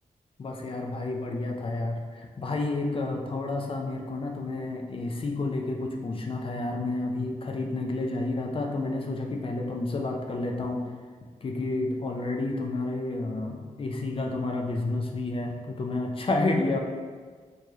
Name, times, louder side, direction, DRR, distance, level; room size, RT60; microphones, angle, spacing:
voice 1, 0.4-10.9 11.4-16.8, left 2 dB, 40° left, 2 dB, 0.4 m, -30 dB
4.6 x 3.1 x 2.8 m, 1.5 s
wide cardioid pair, 175°, 14 cm